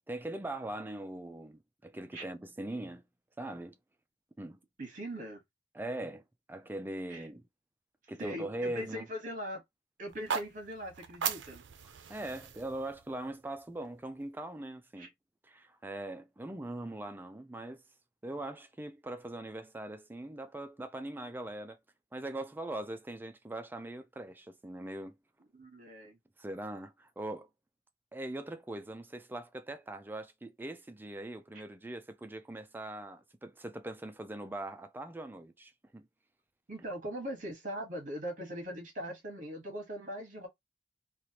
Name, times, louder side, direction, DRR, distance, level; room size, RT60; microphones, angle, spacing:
voice 1, 0.1-3.0 3.4-3.8 4.4-4.6 5.7-7.4 8.1-9.1 12.1-15.1 15.4-17.8 18.2-21.8 22.1-25.2 26.4-27.5 28.1-36.1, right 1 dB, 10° right, 0.4 m, -41 dB
voice 2, 4.8-5.4 7.1-7.3 8.2-9.6 10.0-11.6 15.0-15.1 25.5-26.2 36.7-40.5, equal, 45° right, 1.4 m, -40 dB
sound 1, 10.1-14.2, right 7 dB, 70° right, 0.5 m, -39 dB
3.2 x 2.4 x 2.8 m
head